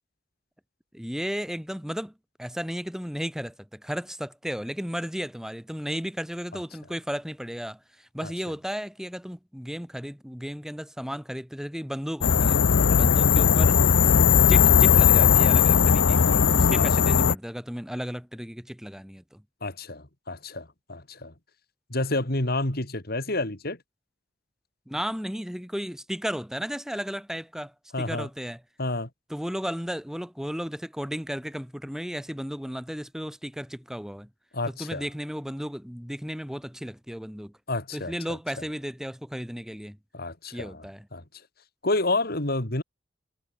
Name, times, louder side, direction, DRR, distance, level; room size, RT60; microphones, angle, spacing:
voice 1, 0.9-2.1 2.4-12.6 12.9-13.8 14.5-19.4 24.9-28.6 29.3-34.3 34.8-37.5 37.9-40.0 40.5-41.1, equal, 5° right, 2.8 m, -34 dB
sound 1, 12.2-17.3, left 7 dB, 70° left, 0.6 m, -18 dB
voice 2, 19.6-21.3 21.9-23.8 27.9-28.3 28.8-29.1 34.5-35.1 37.7-38.4 40.1-40.8 41.1-41.2 41.8-42.8, left 2 dB, 55° left, 3.3 m, -29 dB
head